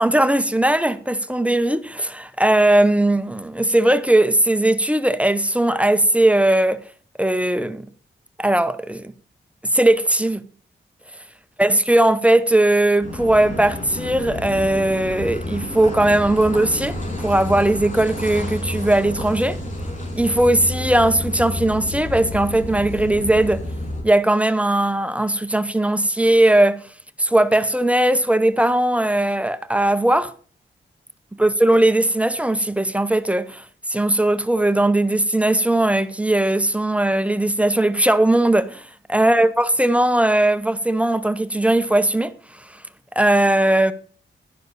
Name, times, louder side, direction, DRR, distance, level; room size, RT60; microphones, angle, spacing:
voice 1, 0.0-6.8 7.2-7.8 8.4-9.1 9.7-10.4 11.6-19.6 20.2-23.6 24.0-26.8 27.2-30.3 31.4-33.6 33.9-38.8 39.1-42.3 43.2-43.9, right 1 dB, 5° right, 0.7 m, -18 dB
Car passing by / Idling / Accelerating revving vroom, 13.0-24.0, left 1 dB, 40° left, 5.5 m, -30 dB
11.5 x 11.0 x 4.1 m
wide cardioid pair, 130°, 20 cm